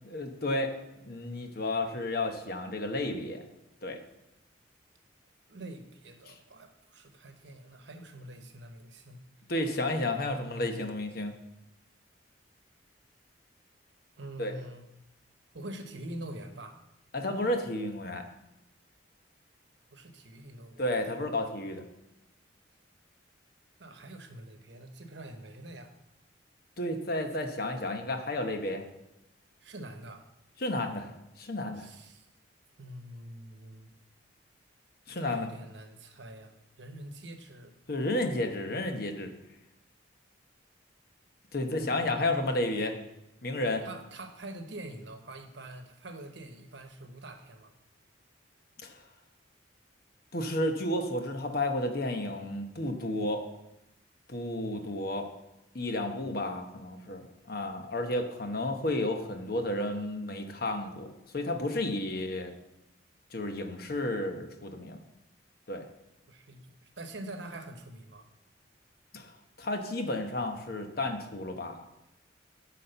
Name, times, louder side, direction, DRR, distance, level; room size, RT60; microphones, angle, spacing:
voice 1, 0.0-0.8 1.0-3.4 3.8-4.0 6.3-6.4 9.5-11.3 14.4-14.5 17.1-18.3 20.8-21.8 26.8-28.8 30.6-31.1 31.4-31.9 35.1-35.5 37.9-39.3 41.5-42.9 43.4-43.8 48.8-49.0 50.3-53.5 54.3-55.3 55.7-61.1 61.3-62.5 63.3-65.0 65.7-65.8 69.1-71.9, left 1 dB, 50° left, 5 dB, 0.9 m, -32 dB
voice 2, 5.5-9.2 10.2-10.8 14.2-14.9 15.5-16.8 19.9-20.9 23.8-25.9 29.6-30.3 31.7-32.3 32.8-33.9 35.2-37.7 41.6-42.3 43.8-47.7 66.3-68.3, right 1 dB, 65° right, 6 dB, 1.0 m, -45 dB
9.7 x 4.3 x 6.7 m, 0.90 s
head